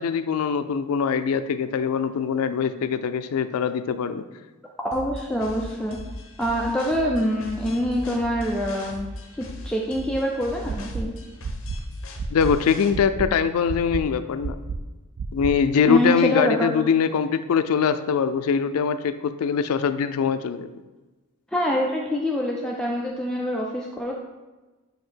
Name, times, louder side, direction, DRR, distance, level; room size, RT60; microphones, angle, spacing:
voice 1, 0.0-4.2 12.3-14.6 15.3-20.7, left 6 dB, 85° left, 11 dB, 0.4 m, -23 dB
voice 2, 4.8-6.0 6.4-9.1 9.3-11.1 15.9-16.7 21.5-24.1, equal, 5° left, -2 dB, 0.4 m, -25 dB
sound 1, 4.9-12.9, left 2 dB, 70° left, 0.8 m, -38 dB
sound 2, 10.7-11.0 11.4-11.8 12.2-12.5 12.9-13.3 13.7-14.0 14.4-14.8 15.2-15.5, right 6 dB, 80° right, 0.4 m, -30 dB
7.6 x 2.8 x 4.5 m, 1.2 s
head